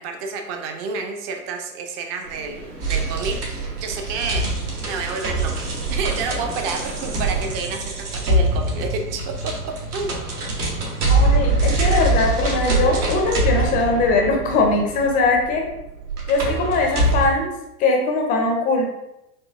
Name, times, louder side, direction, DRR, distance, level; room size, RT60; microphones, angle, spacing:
voice 1, 0.0-4.5 4.9-10.2, right 4 dB, 40° right, 3 dB, 0.6 m, -30 dB
sound 1, 2.2-7.6, right 5 dB, 90° right, 0.8 m, -33 dB
sound 2, 2.8-17.3, right 2 dB, 70° right, 1.1 m, -24 dB
voice 2, 11.1-15.6 16.3-17.5 17.8-18.9, left 3 dB, 20° left, 1 dB, 0.4 m, -20 dB
4.4 x 2.7 x 2.4 m, 0.90 s
figure-of-eight pair, 90°, 47 cm